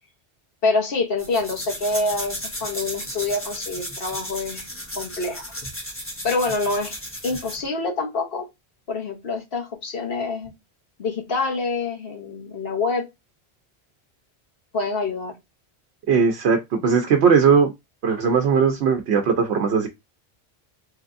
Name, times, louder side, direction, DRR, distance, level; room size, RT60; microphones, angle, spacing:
voice 1, 0.6-4.7 5.0-5.5 6.2-6.9 7.2-8.5 8.9-10.5 11.0-13.1 14.7-15.4, left 3 dB, 65° left, 1.2 m, -26 dB
sound 1, 1.2-7.7, equal, 15° left, 1.0 m, -34 dB
voice 2, 16.1-17.7 18.0-19.9, right 6 dB, 85° right, 0.9 m, -18 dB
3.3 x 3.2 x 2.5 m
omnidirectional pair, 1.1 m